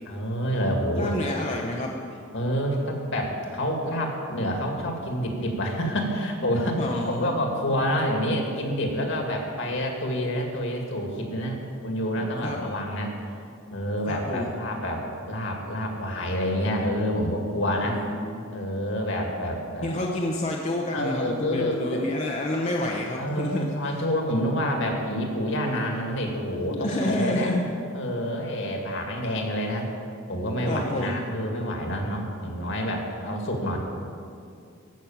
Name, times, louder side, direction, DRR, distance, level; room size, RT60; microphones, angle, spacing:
voice 1, 0.1-1.1 2.3-13.1 13.7-18.0 18.5-19.9 20.9-22.0 23.2-27.5 27.9-29.9 30.3-33.8, equal, 60° left, 2 dB, 2.1 m, -28 dB
voice 2, 1.0-2.0 6.8-7.3 12.2-12.6 14.0-14.5 17.8-18.5 19.8-23.7 26.7-27.6 30.7-31.2, left 1 dB, 35° left, -1 dB, 0.9 m, -29 dB
15.0 x 6.3 x 7.2 m, 2.4 s
head